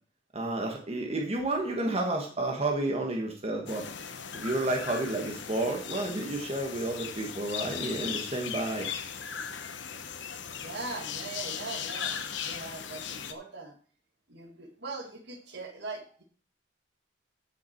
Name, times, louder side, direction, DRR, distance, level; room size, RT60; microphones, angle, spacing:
voice 1, 0.3-3.9 4.3-8.9, right 2 dB, 35° right, 1 dB, 1.4 m, -31 dB
sound 1, 3.7-13.3, left 7 dB, 70° left, 1.0 m, -38 dB
voice 2, 10.5-13.7 14.3-16.2, right 3 dB, 60° right, 3 dB, 2.0 m, -41 dB
13.5 x 6.0 x 4.5 m, 0.43 s
head